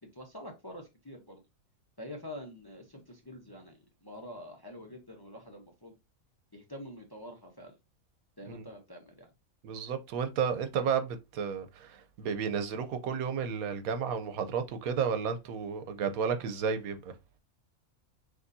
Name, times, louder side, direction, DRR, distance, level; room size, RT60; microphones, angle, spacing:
voice 1, 0.1-1.4 2.0-5.9 6.5-7.7 8.4-9.3, left 1 dB, 20° left, 0.6 m, -46 dB
voice 2, 9.6-17.1, right 6 dB, 85° right, 1.2 m, -32 dB
6.5 x 2.6 x 2.6 m
omnidirectional pair, 1.5 m